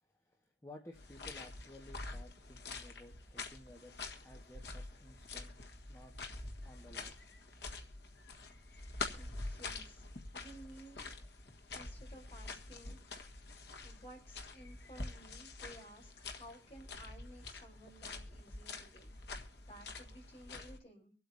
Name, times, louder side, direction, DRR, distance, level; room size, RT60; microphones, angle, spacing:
voice 1, 0.0-5.5 5.9-6.1 6.6-7.4, left 1 dB, 15° left, 1 dB, 1.6 m, -56 dB
sound 1, 0.9-20.8, left 3 dB, 70° left, 1.6 m, -47 dB
voice 2, 9.1-10.0 10.3-11.0 11.7-13.3 13.8-19.2 19.7-21.1, right 1 dB, 35° left, 0 dB, 4.1 m, -56 dB
24.5 x 8.4 x 2.8 m, 0.34 s
head